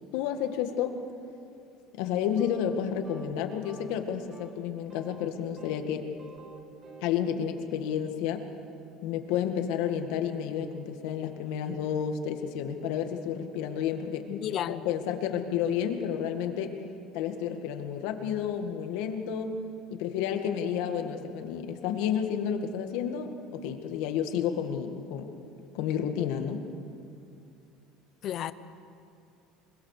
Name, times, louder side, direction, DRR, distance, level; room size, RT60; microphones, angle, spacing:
voice 1, 0.1-1.0 1.9-6.1 7.0-8.4 9.0-14.3 14.7-16.8 17.1-19.6 19.9-25.3 25.7-26.6, left 8 dB, 70° left, 5 dB, 1.9 m, -31 dB
sound 1, 2.4-2.8 3.0-3.3 3.6-4.0 4.3-4.5 4.9-5.9 6.2-7.1, right 2 dB, 25° right, 2.2 m, -50 dB
voice 2, 14.3-14.9 28.2-28.5, left 11 dB, 35° left, 13 dB, 0.7 m, -32 dB
24.5 x 22.0 x 6.8 m, 2.5 s
cardioid pair, 175°, 0 cm